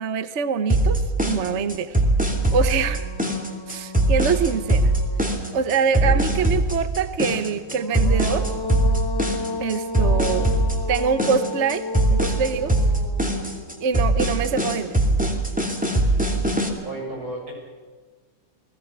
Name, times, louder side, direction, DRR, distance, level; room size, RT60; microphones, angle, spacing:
voice 1, 0.0-2.0 2.5-3.1 3.7-4.9 5.5-8.5 9.6-10.5 10.9-12.7 13.8-15.0, right 6 dB, 45° right, 11 dB, 1.1 m, -24 dB
sound 1, 0.7-16.7, right 1 dB, 5° right, 2.5 m, -21 dB
sound 2, 1.7-1.8 2.2-5.9 7.6-14.8, left 3 dB, 15° left, 1.0 m, -34 dB
voice 2, 16.8-17.5, right 2 dB, 80° right, -1 dB, 8.0 m, -33 dB
29.5 x 19.5 x 6.1 m, 1.5 s
omnidirectional pair, 2.3 m